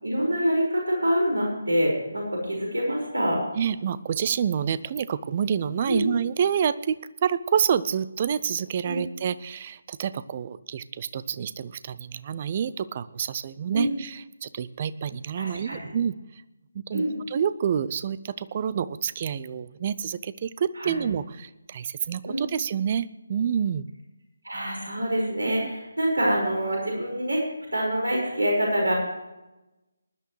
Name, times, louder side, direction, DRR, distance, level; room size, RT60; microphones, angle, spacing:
voice 1, 0.0-3.4 5.9-6.1 8.8-9.0 13.7-13.9 15.4-15.8 16.9-17.2 20.8-21.0 22.2-22.5 24.4-27.4 27.7-28.9, equal, 70° right, -1 dB, 5.2 m, -26 dB
voice 2, 3.6-16.1 16.7-23.8 25.5-25.7, right 8 dB, 30° right, 17 dB, 0.5 m, -28 dB
20.0 x 11.0 x 3.2 m, 1.0 s
figure-of-eight pair, 150°, 0 cm